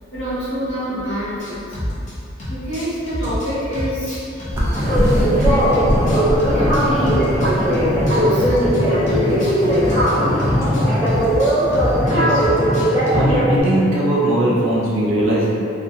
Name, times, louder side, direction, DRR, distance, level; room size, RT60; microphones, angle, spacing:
voice 1, 0.1-1.8 2.5-4.7 5.0-6.2 6.5-7.2 7.6-7.8 8.1-9.9 10.7-10.9, left 1 dB, 90° left, -14 dB, 1.0 m, -26 dB
sound 1, 1.4-2.1 2.4-5.5 5.7-8.8 9.1-13.4, left 1 dB, 40° left, 0.6 m, -28 dB
sound 2, 4.5-12.1, equal, 15° right, 0.3 m, -26 dB
sound 3, 4.7-13.6, equal, 15° left, 1.2 m, -18 dB
voice 2, 12.1-12.4 13.1-15.5, right 1 dB, 90° right, -6 dB, 0.6 m, -19 dB
2.5 x 2.2 x 2.7 m, 2.6 s
head